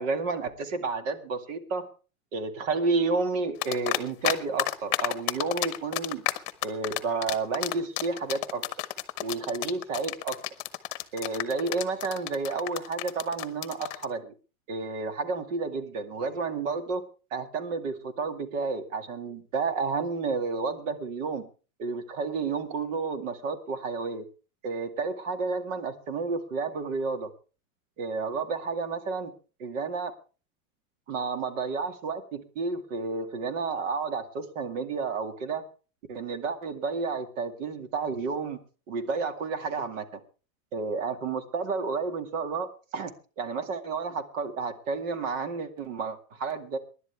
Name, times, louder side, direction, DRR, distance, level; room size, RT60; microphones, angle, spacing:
voice 1, 0.0-1.9 2.3-6.2 6.6-8.7 9.2-10.4 11.1-14.3 14.7-17.0 17.3-21.4 21.8-24.2 24.6-27.3 28.0-29.3 29.6-30.1 31.1-35.6 36.1-38.6 38.9-40.1 40.7-43.1 43.4-46.8, right 4 dB, 60° right, 8 dB, 2.3 m, -31 dB
sound 1, 3.6-4.3 4.6-14.1, left 18 dB, 40° left, 1.0 m, -30 dB
24.5 x 11.0 x 3.5 m, 0.36 s
supercardioid pair, 175°, 42 cm